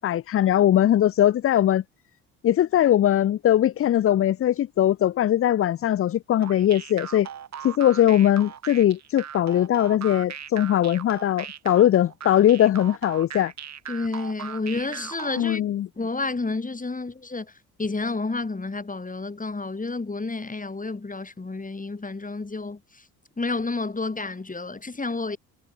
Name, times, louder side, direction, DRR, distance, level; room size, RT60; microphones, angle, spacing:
voice 1, 0.0-1.8 2.4-7.3 7.6-13.5 15.4-15.9, left 11 dB, 35° left, 0.5 m, -20 dB
sound 1, 6.4-15.6, right 8 dB, 45° right, 1.6 m, -39 dB
voice 2, 13.9-15.6 16.0-17.5 17.8-23.0 23.4-25.4, left 3 dB, 20° left, 3.6 m, -30 dB
hypercardioid pair, 60°, 38 cm